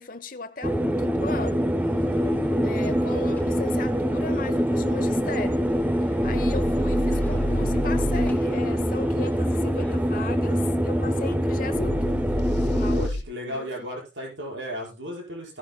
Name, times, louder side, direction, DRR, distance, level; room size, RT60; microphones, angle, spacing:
voice 1, 0.0-1.7 2.6-5.6 6.2-12.3 12.5-13.0 13.5-13.7, left 3 dB, 45° left, 1.0 m, -37 dB
sound 1, 0.6-13.1, equal, 10° right, 0.5 m, -24 dB
sound 2, 1.9-10.3, equal, 10° left, 1.2 m, -42 dB
sound 3, 6.2-8.3 11.7-13.2, left 1 dB, 65° left, 1.2 m, -29 dB
voice 2, 12.9-15.6, equal, 75° right, 5.5 m, -35 dB
16.5 x 10.5 x 2.3 m
head